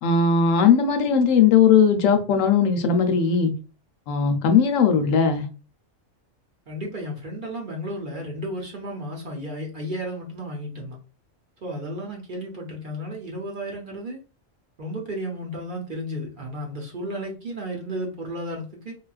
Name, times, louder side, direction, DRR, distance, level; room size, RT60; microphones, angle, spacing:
voice 1, 0.0-3.5 4.1-5.5, left 6 dB, 80° left, 1.0 m, -18 dB
voice 2, 6.7-11.0 11.6-14.2 14.8-19.0, equal, 50° right, 0.8 m, -33 dB
3.6 x 2.4 x 2.3 m
omnidirectional pair, 1.3 m